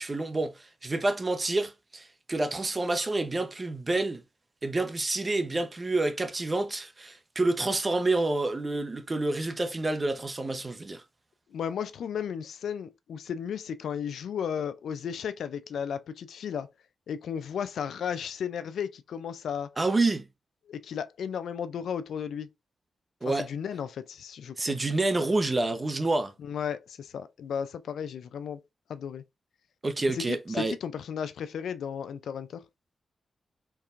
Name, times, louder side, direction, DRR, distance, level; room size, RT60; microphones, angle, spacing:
voice 1, 0.0-4.2 4.6-11.0 19.8-20.3 23.2-23.5 24.6-26.3 29.8-30.7, right 2 dB, 30° right, 0.8 m, -28 dB
voice 2, 11.5-16.7 17.1-19.8 20.7-22.5 23.3-24.8 26.4-28.6 28.9-29.2 30.1-32.6, left 7 dB, 90° left, 0.4 m, -34 dB
4.6 x 3.3 x 2.5 m
cardioid pair, 70°, 0 cm